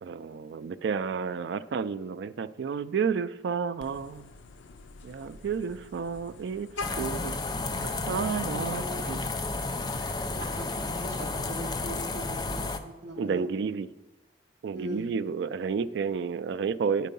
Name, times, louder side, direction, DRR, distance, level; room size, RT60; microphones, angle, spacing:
voice 1, 0.0-4.3 5.0-7.4 7.8-9.3 13.2-13.9 14.6-17.1, right 6 dB, 70° right, 14 dB, 0.3 m, -31 dB
Vehicle horn car horn honking, 3.8-8.9, left 3 dB, 85° left, 0.5 m, -45 dB
sound 1, 6.8-12.8, left 3 dB, 20° left, 0.4 m, -32 dB
voice 2, 8.5-9.0 10.3-13.4 14.7-15.1, right 1 dB, 45° right, -3 dB, 0.8 m, -40 dB
10.0 x 4.6 x 5.3 m, 1.0 s
head